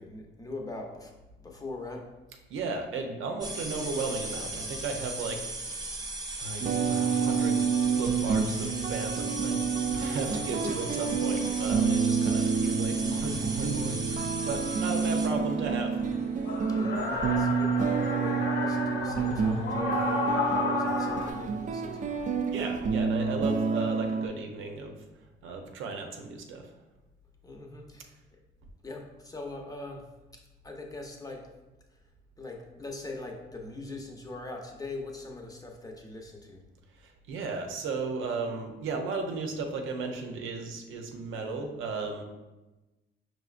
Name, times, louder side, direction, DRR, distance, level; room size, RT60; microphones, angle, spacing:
voice 1, 0.0-2.1 10.0-10.1 10.6-10.7 16.6-22.1 27.4-28.2 28.8-30.1 30.3-31.5 31.9-32.0 32.4-36.6, left 2 dB, 20° left, 1 dB, 0.8 m, -41 dB
voice 2, 2.5-5.5 6.4-7.7 8.0-16.0 22.5-25.0 25.4-26.7 36.9-42.2, right 4 dB, 85° right, 3 dB, 0.6 m, -35 dB
sound 1, 3.4-15.3, right 2 dB, 20° right, 0.8 m, -37 dB
sound 2, 6.6-24.3, right 5 dB, 40° right, 0.4 m, -28 dB
sound 3, 13.1-13.2 15.6-21.3, left 3 dB, 60° left, 0.8 m, -32 dB
4.9 x 3.2 x 2.4 m, 1.1 s
cardioid pair, 90°, 20 cm